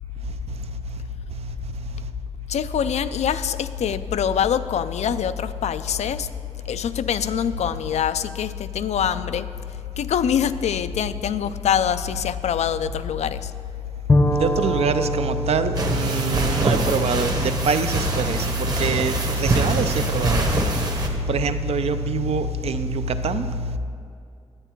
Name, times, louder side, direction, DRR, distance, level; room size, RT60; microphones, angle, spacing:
voice 1, 2.5-6.3 6.7-9.5 10.0-13.5, left 8 dB, 75° left, 0.4 m, -24 dB
Bowed string instrument, 14.1-17.8, left 2 dB, 25° left, 0.6 m, -25 dB
voice 2, 14.3-20.5 21.3-23.5, right 3 dB, 65° right, 0.5 m, -24 dB
sound 1, 15.7-21.1, right 2 dB, 35° right, 1.0 m, -24 dB
10.5 x 9.0 x 4.5 m
wide cardioid pair, 175°, 11 cm